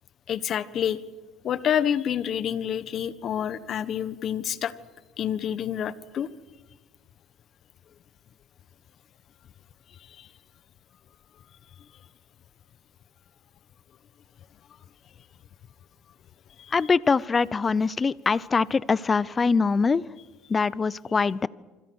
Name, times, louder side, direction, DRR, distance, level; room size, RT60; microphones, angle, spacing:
voice 1, 0.3-1.0 1.4-4.7 5.2-6.3 10.2-10.3 16.6-16.7, left 9 dB, 50° left, 15 dB, 1.4 m, -28 dB
voice 2, 16.7-20.0 20.5-21.5, left 4 dB, 25° left, 21 dB, 0.7 m, -23 dB
26.5 x 25.5 x 6.4 m, 1.3 s
supercardioid pair, 105°, 0 cm